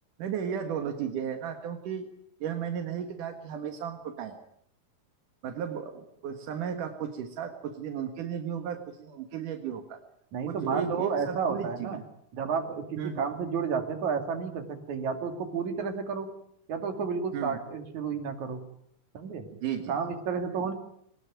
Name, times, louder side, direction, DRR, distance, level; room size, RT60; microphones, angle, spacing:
voice 1, 0.2-2.1 2.4-4.4 5.4-10.0 10.5-12.0 13.0-13.2 17.3-17.6 19.5-20.0, right 8 dB, 85° right, 6 dB, 3.3 m, -34 dB
voice 2, 10.3-12.0 12.3-16.3 16.7-18.6 19.1-19.4 19.9-20.7, right 6 dB, 70° right, 6 dB, 3.9 m, -31 dB
22.5 x 20.0 x 9.2 m, 0.70 s
omnidirectional pair, 3.5 m